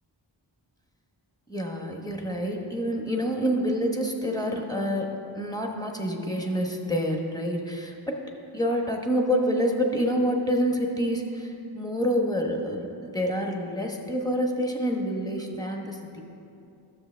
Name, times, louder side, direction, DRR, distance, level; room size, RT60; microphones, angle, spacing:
voice 1, 1.5-8.2 8.5-16.2, equal, 10° left, 1 dB, 1.1 m, -27 dB
12.5 x 6.8 x 3.4 m, 2.6 s
wide cardioid pair, 40°, 47 cm